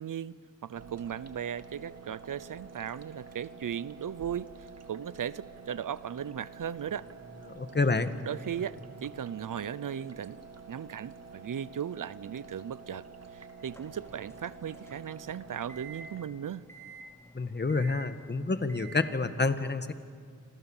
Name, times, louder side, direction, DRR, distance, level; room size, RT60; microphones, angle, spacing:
voice 1, 0.0-7.1 8.2-10.4 10.7-13.0 13.3-16.6, right 9 dB, 70° right, 18 dB, 0.7 m, -37 dB
sound 1, 0.8-16.2, right 4 dB, 50° right, 2.0 m, -49 dB
voice 2, 7.5-8.1 17.3-19.9, left 3 dB, 30° left, 10 dB, 1.6 m, -28 dB
sound 2, 13.6-19.1, right 4 dB, 10° left, 3.1 m, -51 dB
28.5 x 26.5 x 7.3 m, 2.1 s
wide cardioid pair, 75°, 33 cm